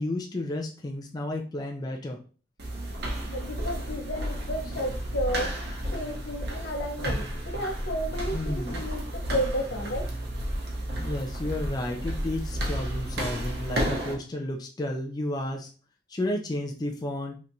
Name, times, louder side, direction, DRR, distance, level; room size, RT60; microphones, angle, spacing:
voice 1, 0.0-2.2 8.3-8.9 11.0-15.7 16.1-17.4, left 1 dB, 25° left, 1 dB, 0.4 m, -32 dB
sound 1, 2.6-14.1, equal, 65° right, 0.8 m, -32 dB
voice 2, 3.3-5.5 5.9-10.1, equal, 70° left, 4 dB, 0.7 m, -32 dB
3.4 x 2.8 x 2.6 m, 0.38 s
head